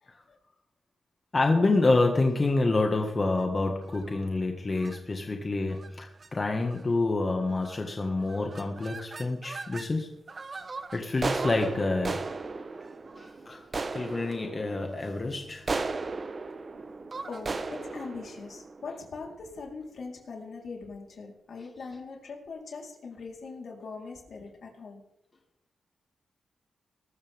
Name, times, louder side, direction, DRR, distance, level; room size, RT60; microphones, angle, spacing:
voice 1, 1.3-10.1 10.9-12.2 13.2-13.6 13.9-15.7, left 2 dB, 35° left, 2 dB, 1.9 m, -27 dB
sound 1, 3.8-4.2 4.7-5.0 5.7-5.9 6.2-6.3 6.6-7.0 7.6-7.9 8.2-9.9 10.3-19.5, right 3 dB, 40° right, 1.2 m, -37 dB
voice 2, 17.3-25.0, left 4 dB, 65° left, 0 dB, 4.3 m, -41 dB
22.0 x 13.5 x 3.7 m, 0.80 s
cardioid pair, 85°, 0 cm